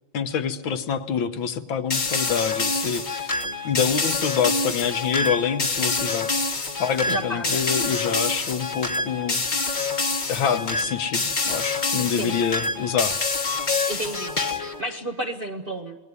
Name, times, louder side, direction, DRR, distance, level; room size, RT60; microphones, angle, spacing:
voice 1, 0.1-3.4 3.6-6.3 6.8-9.4 10.3-13.2, left 7 dB, 70° left, 9 dB, 1.8 m, -26 dB
sound 1, 1.9-14.8, left 3 dB, 30° left, 1.1 m, -26 dB
voice 2, 7.1-7.6 12.1-12.4 13.9-16.0, right 1 dB, 35° right, 3 dB, 0.9 m, -32 dB
27.5 x 20.0 x 9.7 m, 1.3 s
omnidirectional pair, 2.3 m